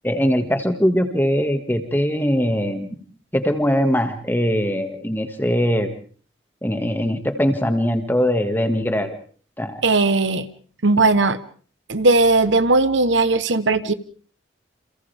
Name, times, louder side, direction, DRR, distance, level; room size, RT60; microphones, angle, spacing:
voice 1, 0.0-2.9 3.3-5.9 6.6-9.1 9.6-9.8, equal, 10° left, 7 dB, 2.1 m, -21 dB
voice 2, 9.8-10.4 10.8-11.4 11.9-13.9, right 3 dB, 85° right, 13 dB, 1.2 m, -17 dB
30.0 x 28.0 x 3.6 m, 0.43 s
head